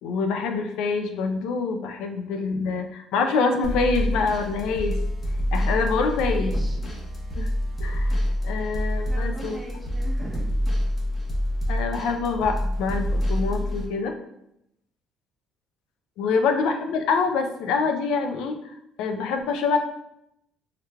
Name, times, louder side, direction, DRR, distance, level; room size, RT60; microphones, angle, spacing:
voice 1, 0.0-5.0 5.5-6.5 7.4-7.5 7.8-9.6 11.7-14.1 16.2-19.8, left 4 dB, 85° left, 6 dB, 0.4 m, -26 dB
sound 1, 3.6-13.9, equal, 25° left, 0.8 m, -27 dB
voice 2, 6.2-6.8 9.0-10.5 16.2-16.4, right 2 dB, 20° right, 0 dB, 0.7 m, -39 dB
3.5 x 3.1 x 2.2 m, 0.80 s
cardioid pair, 115°, 0 cm